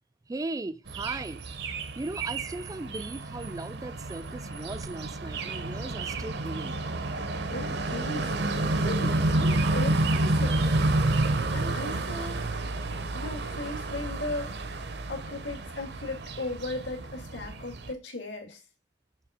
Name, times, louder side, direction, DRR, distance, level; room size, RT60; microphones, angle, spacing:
voice 1, 0.3-1.4 2.0-6.8, right 2 dB, 20° right, 0.3 m, -37 dB
sound 1, 0.9-17.9, right 2 dB, 65° right, 0.8 m, -30 dB
voice 2, 7.5-8.3 8.8-10.9 11.5-12.4 13.1-14.5 15.1-18.6, left 2 dB, 80° left, 1.9 m, -37 dB
6.6 x 3.5 x 4.9 m
head